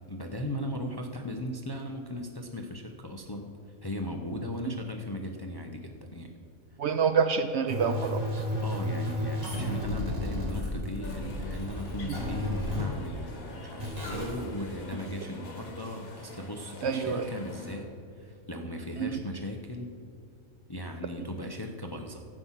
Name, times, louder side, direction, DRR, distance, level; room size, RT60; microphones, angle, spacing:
voice 1, 0.1-3.6 3.8-6.3 8.6-17.9 18.2-19.9 20.7-22.2, left 1 dB, 25° left, 4 dB, 0.6 m, -37 dB
voice 2, 6.8-8.4 12.0-12.2 16.8-17.3 19.0-19.2, right 6 dB, 65° right, 9 dB, 0.7 m, -27 dB
sound 1, 7.7-12.8 13.8-14.4, left 1 dB, 25° right, 2.7 m, -32 dB
sound 2, 11.0-17.8, left 2 dB, 85° left, 2.0 m, -46 dB
12.0 x 8.4 x 5.7 m, 2.5 s
omnidirectional pair, 1.4 m